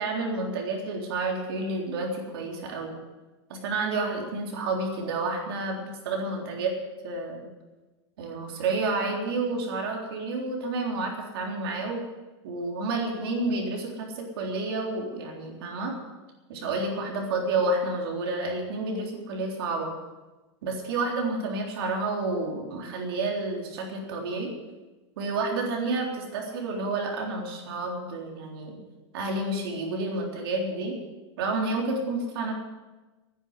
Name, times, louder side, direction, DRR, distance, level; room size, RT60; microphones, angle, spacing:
voice 1, 0.0-3.0 3.5-6.7 7.0-7.5 8.2-12.0 12.4-15.9 16.5-19.9 20.6-24.5 25.2-28.8 29.1-31.0 31.4-32.5, right 2 dB, 55° right, 0 dB, 3.6 m, -30 dB
11.0 x 10.0 x 9.6 m, 1.2 s
supercardioid pair, 180°, 15 cm